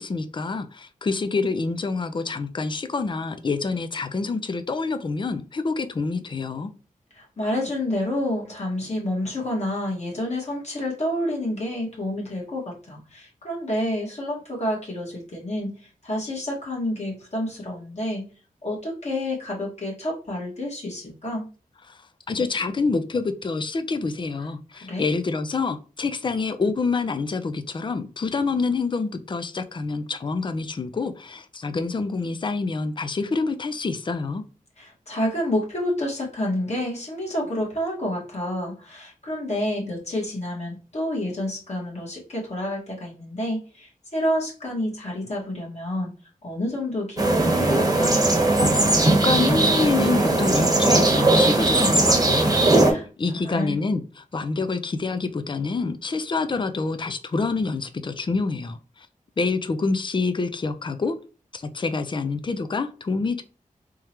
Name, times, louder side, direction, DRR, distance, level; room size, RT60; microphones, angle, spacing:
voice 1, 0.0-6.7 21.9-22.0 22.3-34.4 48.7-54.0 54.3-59.1 59.4-61.2 61.5-63.4, left 4 dB, 35° left, 0.4 m, -27 dB
voice 2, 7.1-18.3 18.6-21.4 24.7-25.0 34.8-46.1 46.4-48.2 52.9-53.1 53.3-53.8, left 1 dB, 50° left, 1.7 m, -29 dB
sound 1, 47.2-52.9, right 2 dB, 25° right, 1.0 m, -19 dB
3.6 x 3.2 x 2.9 m
wide cardioid pair, 80°, 14 cm